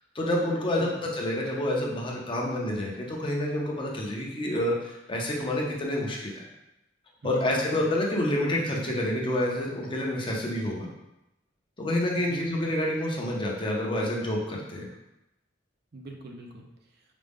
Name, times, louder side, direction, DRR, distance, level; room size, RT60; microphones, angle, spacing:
voice 1, 0.1-6.5 7.2-10.9 11.8-14.9, left 1 dB, 25° left, -2 dB, 0.6 m, -28 dB
voice 2, 0.8-1.1 7.2-7.9 12.2-12.6 15.9-17.0, right 2 dB, 60° right, 2 dB, 0.5 m, -42 dB
5.0 x 2.2 x 3.5 m, 0.91 s
head